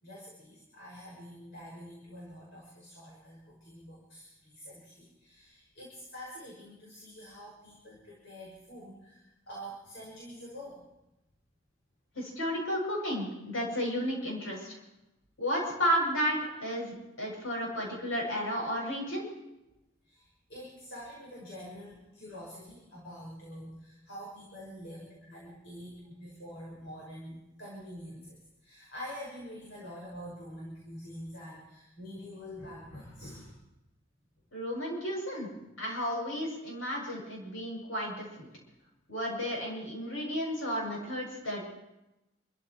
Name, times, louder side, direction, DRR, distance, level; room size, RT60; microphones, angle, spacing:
voice 1, 0.0-10.8 20.0-33.6, equal, 65° left, -5 dB, 6.3 m, -46 dB
voice 2, 12.1-14.8 15.4-19.2 34.5-35.5 35.8-38.5 39.1-41.7, equal, 80° left, -2 dB, 7.8 m, -33 dB
29.0 x 15.0 x 3.2 m, 0.93 s
head